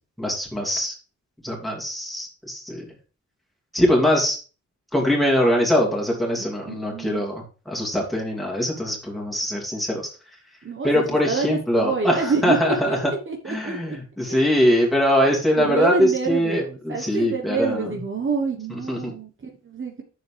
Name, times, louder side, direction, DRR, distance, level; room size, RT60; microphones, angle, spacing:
voice 1, 0.2-0.9 1.4-2.8 3.7-4.4 4.9-10.1 10.8-13.1 13.5-17.9 18.9-19.1, equal, ahead, -2 dB, 2.6 m, -22 dB
voice 2, 6.4-7.2 10.6-14.0 14.3-14.5 15.6-20.0, right 4 dB, 45° right, 3 dB, 1.2 m, -27 dB
8.7 x 6.8 x 3.4 m, 0.36 s
wide cardioid pair, 155°, 29 cm